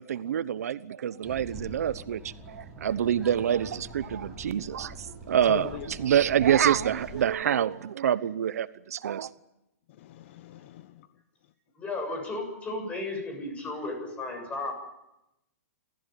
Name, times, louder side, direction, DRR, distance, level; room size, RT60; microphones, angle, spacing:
voice 1, 0.0-9.3, right 9 dB, 75° right, 16 dB, 1.0 m, -27 dB
sound 1, 1.2-7.3, right 2 dB, 5° right, 7.6 m, -44 dB
voice 2, 5.5-5.9 10.0-11.1, left 14 dB, 45° left, 12 dB, 1.1 m, -40 dB
voice 3, 11.8-14.7, left 2 dB, 15° left, 4 dB, 7.4 m, -34 dB
29.5 x 15.0 x 9.3 m, 0.90 s
hypercardioid pair, 155°, 9 cm